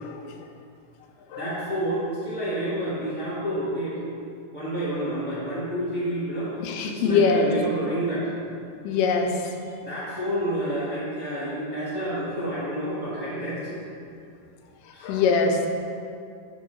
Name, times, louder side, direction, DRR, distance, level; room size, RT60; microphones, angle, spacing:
voice 1, 1.3-4.0 4.5-6.5 6.8-8.3 9.8-13.8 14.9-15.1, right 1 dB, 40° right, -11 dB, 1.0 m, -29 dB
voice 2, 6.6-7.5 8.8-9.3 15.0-15.7, left 4 dB, 90° left, 4 dB, 2.3 m, -22 dB
6.9 x 4.5 x 6.1 m, 2.4 s
omnidirectional pair, 3.7 m